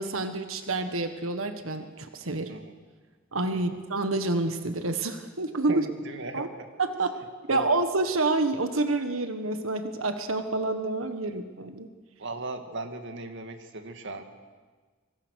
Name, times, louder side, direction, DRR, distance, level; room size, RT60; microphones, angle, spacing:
voice 1, 0.0-2.5 3.3-5.8 6.3-6.5 6.8-7.1 7.5-11.9, right 2 dB, 85° right, 8 dB, 1.5 m, -28 dB
voice 2, 5.7-6.7 7.5-7.7 11.2-11.4 12.2-14.2, right 2 dB, 60° right, 6 dB, 2.1 m, -37 dB
25.0 x 24.0 x 6.5 m, 1.4 s
head